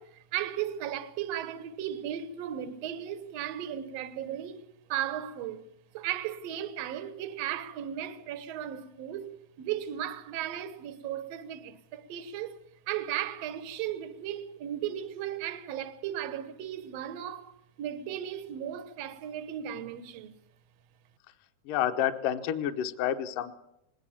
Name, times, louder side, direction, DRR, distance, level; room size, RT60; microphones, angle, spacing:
voice 1, 0.0-5.6 5.9-12.6 12.9-20.3, right 10 dB, 90° right, 1.4 m, -36 dB
voice 2, 21.7-23.5, left 10 dB, 70° left, 2.2 m, -29 dB
20.0 x 19.0 x 7.2 m
omnidirectional pair, 4.7 m